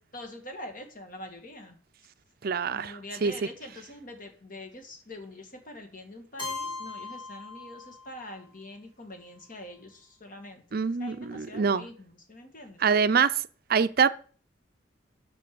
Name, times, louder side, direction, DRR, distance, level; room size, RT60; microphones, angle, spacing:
voice 1, 0.1-1.8 2.7-12.9, left 1 dB, 45° left, 2.2 m, -44 dB
voice 2, 2.4-3.3 10.7-11.8 12.8-13.3 13.7-14.1, right 6 dB, 55° right, 0.5 m, -25 dB
Keyboard (musical), 6.4-8.3, left 4 dB, 25° left, 3.4 m, -38 dB
9.4 x 6.8 x 7.0 m
head